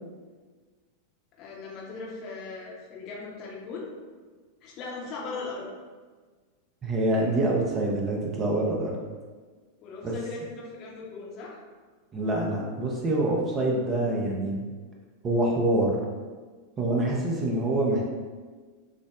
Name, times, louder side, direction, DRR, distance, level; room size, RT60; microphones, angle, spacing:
voice 1, 1.4-3.9 4.6-5.7 9.8-11.6, left 3 dB, 40° left, -3 dB, 0.8 m, -38 dB
voice 2, 6.8-8.9 10.0-10.1 12.1-14.6 15.2-16.0 16.8-18.1, right 1 dB, 25° right, -1 dB, 0.6 m, -25 dB
6.1 x 2.1 x 2.3 m, 1.4 s
figure-of-eight pair, 90°, 0 cm